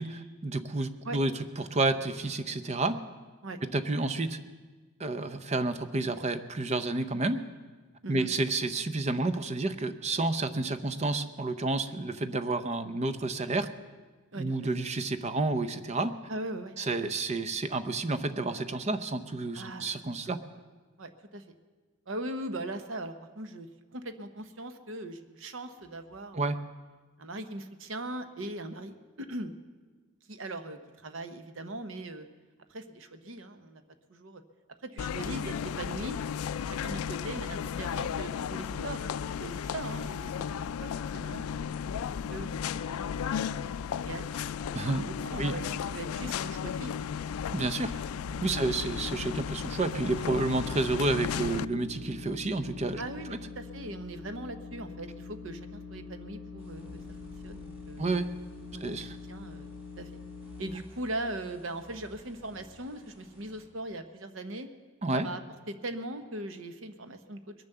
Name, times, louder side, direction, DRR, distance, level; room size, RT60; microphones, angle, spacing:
voice 1, 0.0-3.0 3.6-4.4 5.0-7.4 8.1-13.7 14.4-16.1 16.8-20.4 26.3-26.6 44.7-45.1 45.4-45.5 47.5-47.9 48.4-53.0 58.0-58.3 58.8-59.2 65.0-65.3, right 2 dB, 30° right, 11 dB, 0.6 m, -30 dB
voice 2, 16.3-16.8 19.5-19.9 20.2-20.4 21.0-21.4 22.1-23.7 23.9-26.5 27.2-29.5 30.3-32.3 32.7-33.8 34.1-34.4 34.8-36.2 36.7-39.1 39.4-41.8 42.3-43.3 44.0-45.6 45.9-47.0 48.5-48.8 53.0-57.0 57.4-58.0 58.7-59.0 59.3-60.2 60.6-64.7 65.1-65.4 65.7-67.5, right 1 dB, 65° right, 9 dB, 0.9 m, -40 dB
sound 1, 35.0-51.7, left 7 dB, 85° left, 0.3 m, -34 dB
sound 2, 48.2-49.4 49.9-60.7, left 4 dB, 70° left, 0.9 m, -44 dB
sound 3, 56.6-63.7, left 1 dB, 10° right, 3.9 m, -55 dB
21.5 x 7.2 x 6.8 m, 1.3 s
head